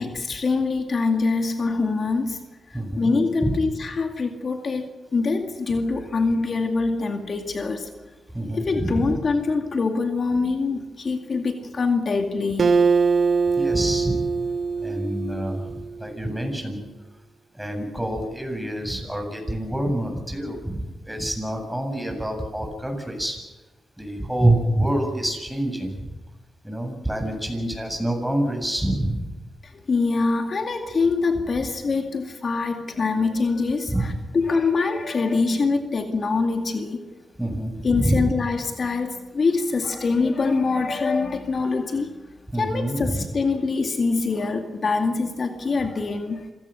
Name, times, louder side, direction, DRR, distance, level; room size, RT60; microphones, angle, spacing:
voice 1, 0.0-2.4 2.7-7.9 8.5-12.7 29.6-37.0 37.8-42.1 42.6-46.5, left 4 dB, 55° left, 5 dB, 2.1 m, -24 dB
voice 2, 2.7-3.1 3.4-3.7 8.3-9.2 13.6-14.2 14.8-16.8 17.5-23.4 24.0-26.1 26.6-29.3 33.9-34.1 37.4-38.3 42.5-43.2, right 1 dB, 5° right, 3 dB, 8.0 m, -26 dB
Acoustic guitar, 12.6-16.1, right 5 dB, 55° right, 1.4 m, -22 dB
26.5 x 17.0 x 6.6 m, 1.2 s
supercardioid pair, 45°, 0 cm